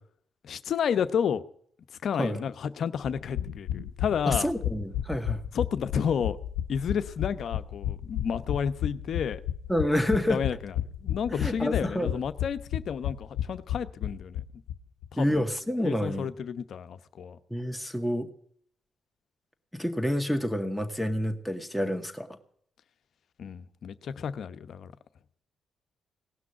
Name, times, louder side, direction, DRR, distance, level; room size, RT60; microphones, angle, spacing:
voice 1, 0.4-1.4 2.0-4.5 5.5-6.4 6.7-9.4 10.3-14.4 15.1-15.4 15.8-17.4 23.4-24.9, left 7 dB, 65° left, 0.9 m, -31 dB
sound 1, 3.0-14.8 15.0-15.1 15.4-15.5, left 11 dB, 90° left, 0.6 m, -32 dB
voice 2, 4.3-5.4 9.7-10.4 11.3-12.2 15.2-16.3 17.5-18.3 19.7-22.3, equal, ahead, 2.0 m, -28 dB
18.0 x 6.1 x 10.0 m
supercardioid pair, 55°, 0 cm